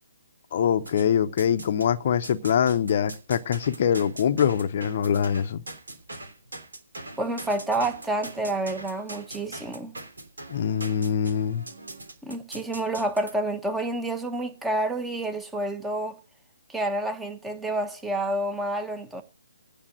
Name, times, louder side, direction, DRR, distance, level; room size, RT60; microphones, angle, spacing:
voice 1, 0.5-5.6 10.5-11.6, left 8 dB, 45° left, 0.7 m, -24 dB
sound 1, 0.8-1.9 2.2-13.3, right 2 dB, 80° right, 3.2 m, -42 dB
voice 2, 7.2-9.9 12.2-16.2 16.7-19.2, right 1 dB, 5° right, 1.1 m, -29 dB
9.8 x 6.9 x 8.8 m
figure-of-eight pair, 145°, 0 cm